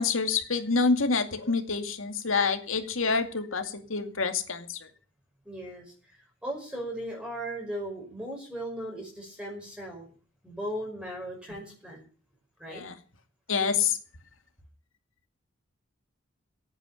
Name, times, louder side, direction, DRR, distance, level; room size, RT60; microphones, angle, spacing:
voice 1, 0.0-4.8 12.7-13.0 13.5-14.0, left 4 dB, 80° left, 7 dB, 2.3 m, -27 dB
voice 2, 5.5-10.1 10.4-12.0 12.6-12.8, right 1 dB, 5° right, -1 dB, 5.4 m, -37 dB
16.5 x 9.2 x 7.1 m, 0.41 s
head